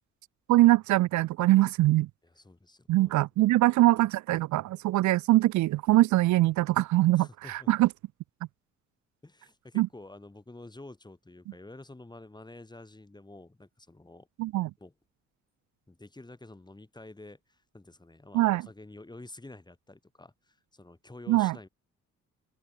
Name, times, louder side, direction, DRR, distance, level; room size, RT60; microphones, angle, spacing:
voice 1, 0.5-2.1 2.9-7.9 9.8-9.9 14.4-14.7 18.3-18.6 21.3-21.6, right 17 dB, 70° right, 0.5 m, -23 dB
voice 2, 2.2-3.5 7.2-7.7 9.2-14.3 14.8-14.9 15.9-21.7, left 2 dB, 15° left, 5.3 m, -49 dB
open air
cardioid pair, 90°, 30 cm